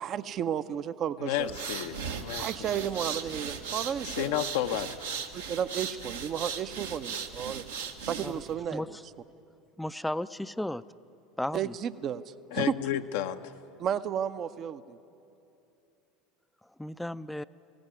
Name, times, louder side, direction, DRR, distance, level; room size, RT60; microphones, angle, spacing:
voice 1, 0.0-1.6 2.4-4.5 5.3-7.6 8.0-9.0 11.5-12.7 13.8-15.0, right 9 dB, 40° right, 13 dB, 0.7 m, -33 dB
voice 2, 1.2-2.7 4.0-5.1 12.5-13.5, left 11 dB, 60° left, 7 dB, 0.7 m, -32 dB
sound 1, 1.4-8.5, right 6 dB, 75° right, 1.3 m, -37 dB
voice 3, 8.7-9.0 9.8-10.8 11.4-11.7 16.8-17.4, left 1 dB, 5° left, 15 dB, 0.5 m, -34 dB
20.5 x 17.0 x 9.6 m, 2.8 s
figure-of-eight pair, 75°, 0 cm